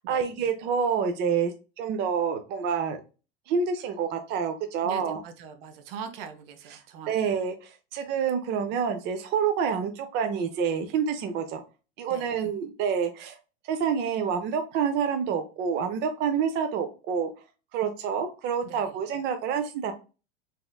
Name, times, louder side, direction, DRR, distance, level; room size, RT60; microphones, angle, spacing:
voice 1, 0.1-3.0 3.5-5.2 6.7-6.8 7.1-11.6 12.0-13.4 13.7-17.3 17.7-19.9, right 6 dB, 35° right, 6 dB, 0.5 m, -28 dB
voice 2, 4.8-7.1 12.1-12.3 18.6-18.9, right 6 dB, 65° right, 8 dB, 0.8 m, -41 dB
4.0 x 2.5 x 2.3 m, 0.32 s
hypercardioid pair, 115°, 31 cm